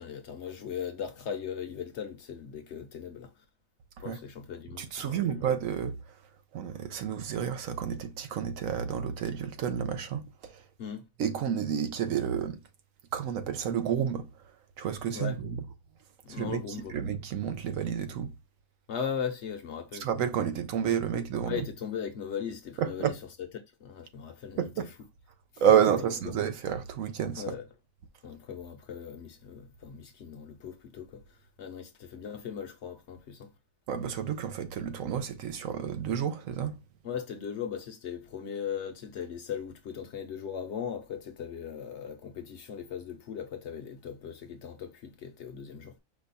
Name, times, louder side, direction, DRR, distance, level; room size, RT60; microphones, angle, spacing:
voice 1, 0.0-3.3 4.0-5.4 10.8-11.0 15.1-15.4 16.2-17.0 18.9-20.1 21.5-23.1 23.8-24.8 26.0-26.3 27.4-27.6 28.2-31.2 31.6-33.5 37.0-46.0, left 7 dB, 60° left, 0.9 m, -38 dB
voice 2, 4.8-5.9 6.5-10.6 11.2-12.6 13.1-14.3 14.8-15.5 16.3-16.6 16.9-18.3 20.0-21.6 22.8-23.2 24.6-24.9 25.6-27.5 33.9-36.8, right 8 dB, 75° right, 1.0 m, -30 dB
5.1 x 2.3 x 4.0 m
omnidirectional pair, 1.5 m